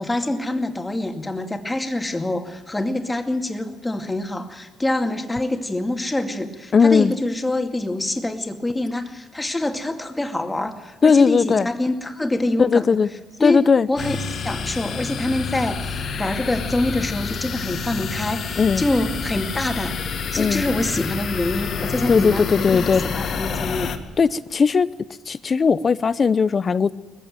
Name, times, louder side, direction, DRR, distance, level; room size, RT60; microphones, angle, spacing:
voice 1, 0.0-13.0 13.4-14.2 14.4-20.0 20.3-23.9, left 1 dB, 15° left, 5 dB, 2.3 m, -25 dB
voice 2, 6.7-7.1 11.0-11.7 12.6-13.1 13.4-13.9 18.6-18.8 20.4-20.7 22.1-23.0 24.2-24.9 25.3-26.9, left 5 dB, 40° left, 17 dB, 0.8 m, -18 dB
sound 1, 14.0-24.0, left 5 dB, 65° left, 2.0 m, -28 dB
20.0 x 15.0 x 9.2 m, 1.3 s
cardioid pair, 90°, 0 cm